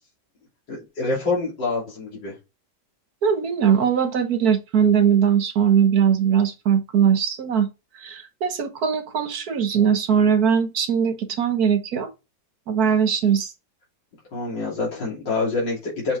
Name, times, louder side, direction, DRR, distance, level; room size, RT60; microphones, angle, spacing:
voice 1, 0.7-2.3 14.3-16.2, left 3 dB, 90° left, 3.9 m, -26 dB
voice 2, 3.2-7.7 8.0-12.1 12.7-13.5, right 8 dB, 60° right, 1.5 m, -20 dB
8.3 x 5.6 x 3.5 m
omnidirectional pair, 1.9 m